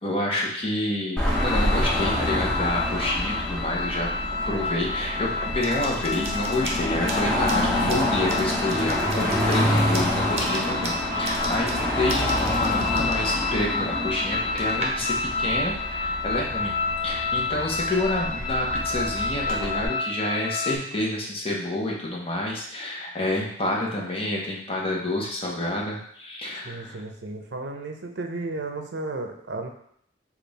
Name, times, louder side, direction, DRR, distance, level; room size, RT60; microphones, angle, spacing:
voice 1, 0.0-4.1 4.5-16.7 17.0-27.0, left 1 dB, 30° left, -2 dB, 0.9 m, -28 dB
Car passing by / Traffic noise roadway noise / Engine, 1.2-19.9, left 1 dB, 5° left, 0.9 m, -28 dB
sound 1, 1.3-20.8, left 4 dB, 55° left, 0.5 m, -30 dB
sound 2, 5.6-14.9, right 2 dB, 35° right, 0.7 m, -38 dB
voice 2, 26.6-29.7, right 2 dB, 70° right, 4 dB, 0.6 m, -34 dB
5.2 x 2.5 x 4.0 m, 0.68 s
head